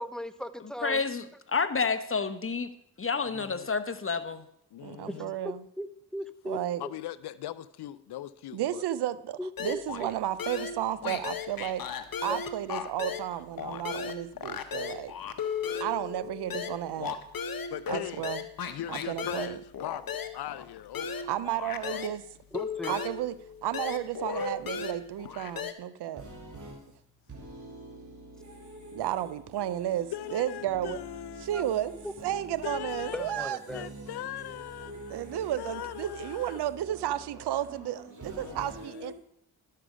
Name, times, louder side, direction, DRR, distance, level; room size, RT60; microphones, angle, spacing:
voice 1, 0.0-1.0 5.1-5.2 5.8-6.9 9.4-9.8 22.5-23.0 31.5-31.7 33.1-33.9, equal, ahead, 0.7 m, -37 dB
voice 2, 0.8-2.7 3.0-4.4, left 4 dB, 35° left, 1.0 m, -29 dB
voice 3, 3.2-3.7 4.7-5.4 6.8-8.8 17.7-18.3 18.7-21.3 21.8-22.0 30.1-31.5 32.6-33.4 33.7-35.2 35.6-36.6 38.4-39.1, left 12 dB, 75° left, 0.6 m, -40 dB
voice 4, 4.8-5.6 6.5-6.8 8.5-11.9 12.2-15.1 15.8-17.2 17.9-18.4 18.9-19.6 21.3-22.2 22.9-26.2 28.9-31.0 31.4-31.9 32.2-33.6 35.1-39.1, right 12 dB, 80° right, 0.6 m, -33 dB
sound 1, 9.6-10.1 10.4-13.3 13.6-22.2 22.5-25.7, left 6 dB, 60° left, 1.0 m, -36 dB
voice 5, 26.1-27.0 27.3-39.1, right 2 dB, 50° right, 3.0 m, -46 dB
12.0 x 6.7 x 5.0 m
supercardioid pair, 45°, 40 cm